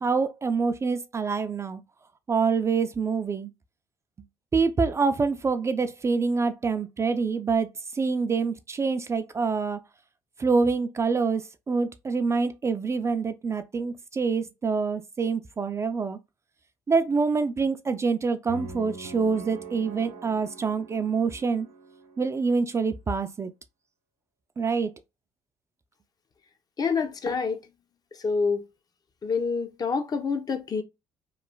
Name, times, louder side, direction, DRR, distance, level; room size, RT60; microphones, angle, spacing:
voice 1, 0.0-1.8 2.3-3.5 4.5-7.7 8.0-9.8 10.4-16.2 16.9-21.7 22.2-23.5 24.6-24.9, right 4 dB, 25° right, 0.3 m, -26 dB
sound 1, 18.5-22.6, right 4 dB, 85° right, 0.7 m, -43 dB
voice 2, 26.8-27.7 28.2-28.6 29.2-30.8, left 5 dB, 35° left, 0.6 m, -27 dB
3.0 x 2.4 x 2.2 m
hypercardioid pair, 60°, 11 cm